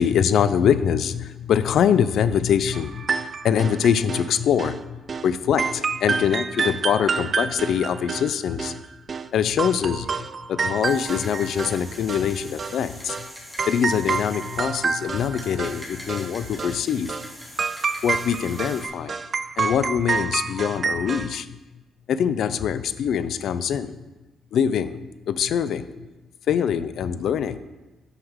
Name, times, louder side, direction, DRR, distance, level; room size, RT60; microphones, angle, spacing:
voice 1, 0.0-3.1 3.4-8.7 9.3-13.2 13.7-17.1 18.0-19.2 19.6-21.5 22.1-24.0 24.5-25.0 25.3-25.9 26.5-27.6, left 8 dB, 70° left, 13 dB, 0.4 m, -23 dB
sound 1, 2.7-4.3 4.6-4.8 5.1-5.3 5.6-9.3 9.6-11.8 12.1-12.8 13.1-13.3 13.6-15.8 16.1-16.3 16.6-16.8 17.1-17.3 17.6-21.4, right 5 dB, 40° right, 0.3 m, -28 dB
sound 2, 10.8-18.9, left 1 dB, 5° left, 1.9 m, -43 dB
7.9 x 6.3 x 3.6 m, 1.1 s
cardioid pair, 90°, 0 cm